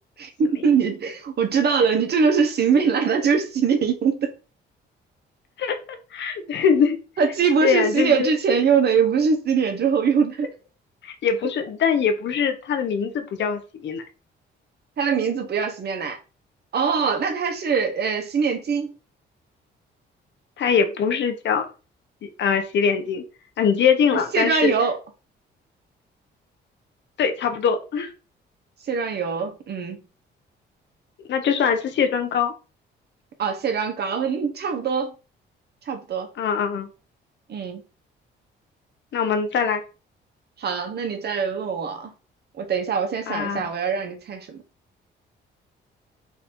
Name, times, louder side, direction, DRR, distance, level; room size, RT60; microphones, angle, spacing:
voice 1, 0.2-4.3 7.2-10.5 15.0-16.2 16.7-18.9 24.1-25.0 28.9-30.0 33.4-35.1 35.9-36.3 37.5-37.8 40.6-42.1 42.6-44.6, right 6 dB, 55° right, 1.1 m, -22 dB
voice 2, 5.6-7.0 7.6-8.3 11.0-14.0 20.6-21.7 22.2-23.2 23.6-24.7 27.2-28.1 31.3-32.5 36.4-36.9 39.1-39.8 43.3-43.6, left 6 dB, 65° left, 1.0 m, -22 dB
4.1 x 2.7 x 4.4 m
cardioid pair, 90°, 20 cm